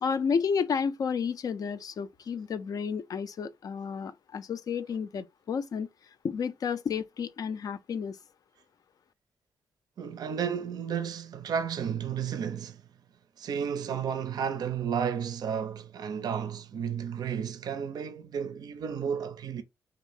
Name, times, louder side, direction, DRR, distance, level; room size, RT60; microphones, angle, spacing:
voice 1, 0.0-5.9 6.2-8.2, left 6 dB, 60° left, 0.4 m, -31 dB
voice 2, 10.0-12.8 13.4-19.6, right 7 dB, 65° right, 0.4 m, -32 dB
2.5 x 2.4 x 3.3 m
supercardioid pair, 55°, 7 cm